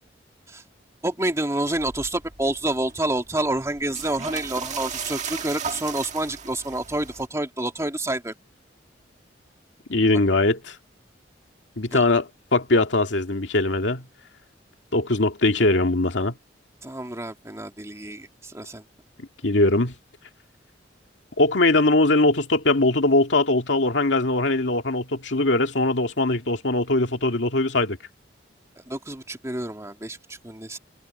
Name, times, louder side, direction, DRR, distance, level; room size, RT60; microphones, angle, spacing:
voice 1, 1.0-8.3 11.9-12.1 16.8-18.8 28.9-30.8, right 1 dB, 15° right, 2.5 m, -28 dB
sound 1, 1.7-7.3, right 6 dB, 40° right, 1.7 m, -36 dB
voice 2, 9.9-10.8 11.8-14.1 14.9-16.3 19.2-19.9 21.4-28.0, left 2 dB, 90° left, 2.2 m, -21 dB
head